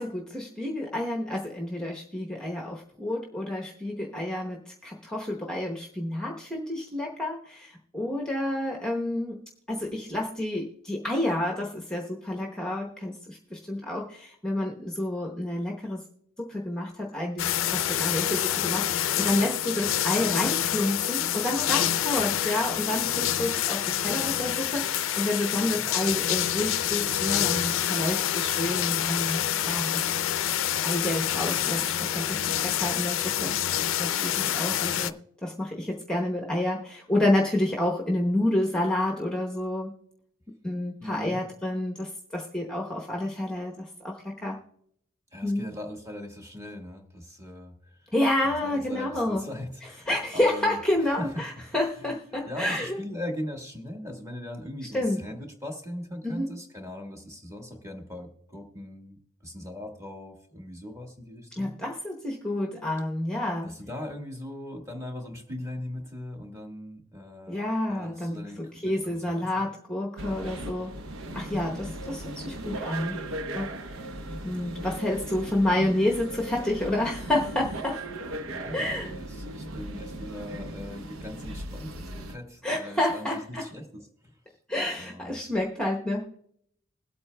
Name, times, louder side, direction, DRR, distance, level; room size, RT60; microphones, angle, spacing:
voice 1, 0.0-9.4 9.7-16.0 16.4-30.1 30.8-35.1 35.4-39.9 40.6-44.6 45.4-45.7 48.1-49.4 50.1-53.0 54.9-55.2 56.2-56.5 61.5-63.7 67.5-70.9 71.3-73.2 73.5-74.0 74.4-78.0 78.7-79.1 82.6-83.7 84.7-86.4, left 1 dB, 5° left, -1 dB, 0.9 m, -29 dB
sound 1, 17.4-35.1, left 11 dB, 70° left, 0.5 m, -27 dB
voice 2, 25.5-25.8 34.6-35.0 41.0-41.4 45.3-48.1 48.4-51.7 52.0-52.1 52.5-61.7 63.6-69.7 70.3-70.7 78.4-84.4 85.0-85.4, left 1 dB, 15° right, 2 dB, 1.4 m, -40 dB
sound 2, 70.2-82.4, right 1 dB, 85° right, 0.8 m, -37 dB
21.0 x 8.3 x 2.2 m, 0.71 s
head